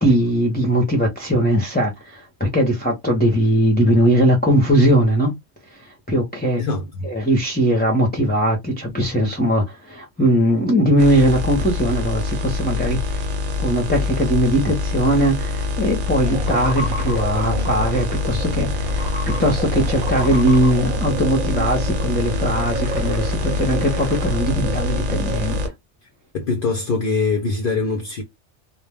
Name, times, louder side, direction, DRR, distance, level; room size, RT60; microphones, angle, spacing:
voice 1, 0.0-5.3 5.8-6.6 7.0-13.3 13.6-25.6, right 1 dB, 10° left, 0.4 m, -20 dB
voice 2, 6.6-7.1 26.3-28.2, left 4 dB, 60° left, 0.6 m, -23 dB
sound 1, 11.0-25.7, left 2 dB, 75° right, 0.9 m, -25 dB
sound 2, 16.2-25.7, right 1 dB, 45° right, 0.8 m, -30 dB
2.2 x 2.1 x 3.2 m
omnidirectional pair, 1.2 m